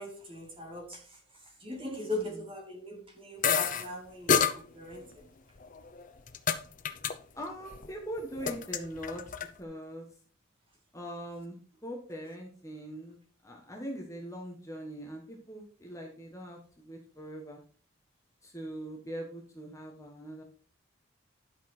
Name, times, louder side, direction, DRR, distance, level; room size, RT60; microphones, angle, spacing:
voice 1, 0.0-5.3, left 1 dB, 25° right, 2 dB, 2.6 m, -40 dB
sound 1, 3.4-3.9 4.3-4.6 5.6-6.6 6.8-7.1 7.4-7.9 8.2-9.5, left 7 dB, 40° left, 0.7 m, -28 dB
voice 2, 7.4-9.2 9.6-10.1 10.9-17.6 18.4-20.4, equal, 15° left, 0 dB, 1.5 m, -42 dB
11.5 x 5.7 x 4.4 m, 0.42 s
head